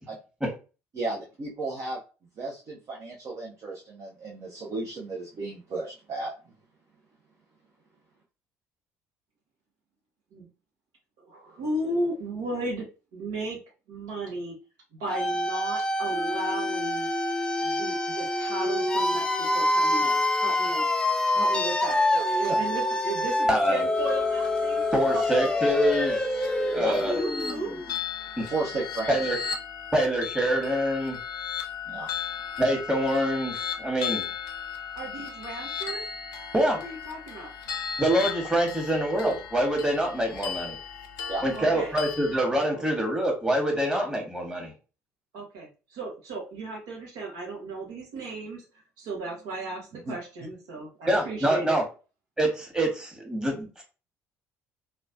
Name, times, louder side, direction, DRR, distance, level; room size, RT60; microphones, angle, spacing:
voice 1, 0.9-2.0 2.4-6.3 26.7-26.9 28.5-29.3 31.9-32.1 41.3-41.4 49.9-50.1, right 3 dB, 45° right, -4 dB, 0.7 m, -34 dB
voice 2, 11.2-12.9 13.1-13.6 13.9-14.6 14.9-17.1 17.6-20.9 21.3-24.8 25.1-25.5 26.8-27.7 34.9-36.0 36.8-37.5 41.5-41.9 42.7-43.2 43.9-44.3 45.3-48.6 49.0-51.8, right 2 dB, 70° right, -2 dB, 1.0 m, -35 dB
sound 1, 15.1-27.9, left 1 dB, 10° left, 0.4 m, -26 dB
voice 3, 23.5-23.8 24.9-26.2 26.7-27.1 28.4-28.5 29.1-29.4 29.9-31.2 32.6-34.3 36.5-36.8 38.0-40.8 41.4-44.7 51.1-51.8 52.4-53.8, right 1 dB, 10° right, 0 dB, 1.3 m, -25 dB
sound 2, 24.0-42.4, left 7 dB, 65° left, 0.6 m, -36 dB
3.1 x 2.2 x 2.5 m, 0.33 s
hypercardioid pair, 55°, 7 cm